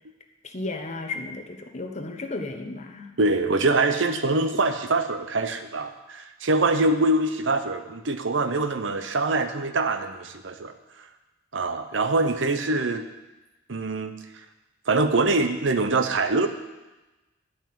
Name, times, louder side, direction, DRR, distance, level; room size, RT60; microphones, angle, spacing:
voice 1, 0.4-3.1, left 2 dB, 40° left, 5 dB, 1.2 m, -34 dB
voice 2, 3.2-10.7 11.5-13.1 13.7-14.2 14.9-16.5, right 2 dB, 75° right, 8 dB, 0.8 m, -24 dB
11.5 x 5.9 x 8.7 m, 1.1 s
head